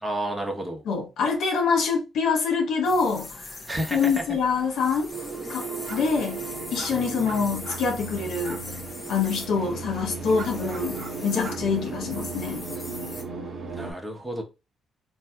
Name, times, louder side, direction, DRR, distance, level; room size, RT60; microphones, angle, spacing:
voice 1, 0.0-0.8 3.7-4.2 13.7-14.4, right 1 dB, 10° right, 0.9 m, -31 dB
voice 2, 0.9-3.3 3.9-5.1 5.5-6.4 6.7-8.6 9.1-12.6, left 5 dB, 75° left, 0.8 m, -25 dB
sound 1, 2.8-13.2, left 3 dB, 30° left, 0.6 m, -41 dB
sound 2, 5.1-13.9, right 4 dB, 45° right, 0.8 m, -36 dB
sound 3, 5.9-6.0 6.7-6.9 7.2-7.8 8.4-8.6 10.4-11.1 11.4-11.6, right 4 dB, 75° right, 0.9 m, -40 dB
3.2 x 2.6 x 2.2 m
cardioid pair, 90°, 0 cm